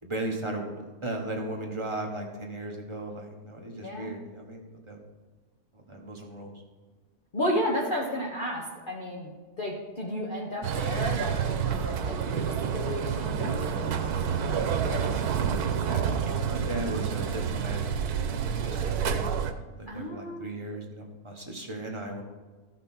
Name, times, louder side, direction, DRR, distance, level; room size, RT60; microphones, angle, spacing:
voice 1, 0.0-5.0 5.7-6.6 15.7-16.0 16.5-17.8 18.3-19.3 19.7-22.2, right 1 dB, 20° right, 1 dB, 1.2 m, -36 dB
voice 2, 7.3-9.3 9.6-15.1 15.9-16.6 19.9-20.5, left 1 dB, 35° left, -3 dB, 1.1 m, -33 dB
sound 1, 10.6-19.5, right 7 dB, 85° right, 1.3 m, -29 dB
14.0 x 5.8 x 4.3 m, 1.3 s
omnidirectional pair, 1.6 m